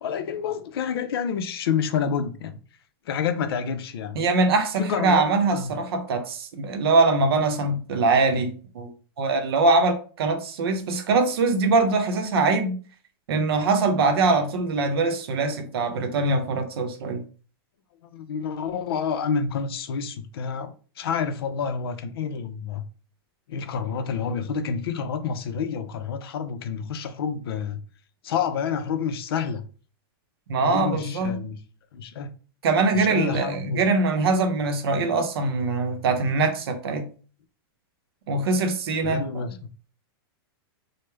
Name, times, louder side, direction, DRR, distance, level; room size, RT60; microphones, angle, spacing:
voice 1, 0.0-2.6 3.1-4.2 4.8-5.3 5.5-5.7 18.0-22.8 23.5-27.8 28.2-29.6 30.6-31.6 31.9-32.3 32.9-33.8 39.0-39.5, left 6 dB, 75° left, 0.5 m, -28 dB
voice 2, 4.2-8.9 9.2-12.8 13.3-17.2 30.5-31.4 32.6-37.1 38.3-39.4, right 3 dB, 80° right, 0.7 m, -23 dB
3.1 x 2.1 x 3.3 m
supercardioid pair, 170°, 13 cm